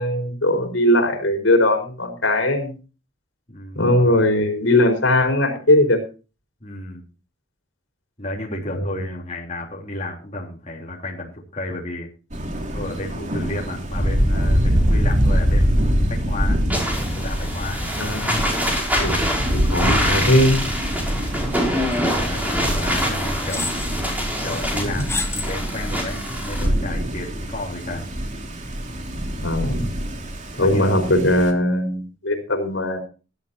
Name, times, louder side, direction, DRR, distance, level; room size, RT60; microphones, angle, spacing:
voice 1, 0.0-2.7 3.7-6.0 8.7-8.9 18.0-18.4 19.0-19.2 19.5-20.6 29.4-29.9 30.6-33.0, left 1 dB, 75° left, 5 dB, 4.6 m, -19 dB
voice 2, 3.5-4.2 6.6-7.0 8.2-12.1 12.7-16.6 17.1-17.8 22.0-28.0 30.6-31.0, left 1 dB, 35° left, -2 dB, 3.5 m, -32 dB
Thunder, 12.3-31.5, equal, 40° right, 2.8 m, -24 dB
sound 1, 16.7-26.7, equal, 10° right, 5.9 m, -26 dB
sound 2, 21.3-21.6 21.9-22.0 22.9-23.0 23.5-23.9 25.0-25.5 26.0-26.1, left 3 dB, 15° left, 1.3 m, -28 dB
18.5 x 12.5 x 2.9 m, 0.33 s
head